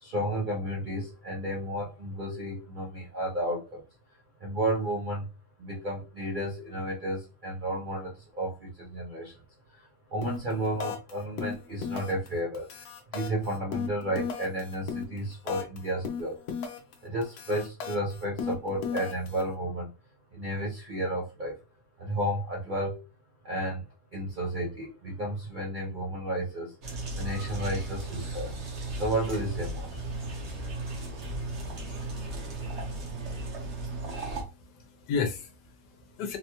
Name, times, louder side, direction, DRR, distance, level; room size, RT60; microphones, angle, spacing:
voice 1, 0.0-3.8 4.4-5.3 5.6-9.3 10.1-12.7 13.1-16.4 17.0-19.9 20.3-21.6 22.0-23.0 23.4-23.8 24.1-26.7 27.2-28.5 28.9-29.9, right 1 dB, 65° right, 0.4 m, -32 dB
sound 1, 10.2-10.5 10.8-11.1 11.4-12.3 12.5-15.8 16.0-16.9 17.2-19.4, left 7 dB, 70° left, 1.1 m, -35 dB
sound 2, 26.8-34.4, right 2 dB, 50° right, 1.0 m, -36 dB
voice 2, 34.4-36.4, left 5 dB, 90° left, 1.3 m, -34 dB
4.0 x 2.2 x 2.9 m
omnidirectional pair, 1.8 m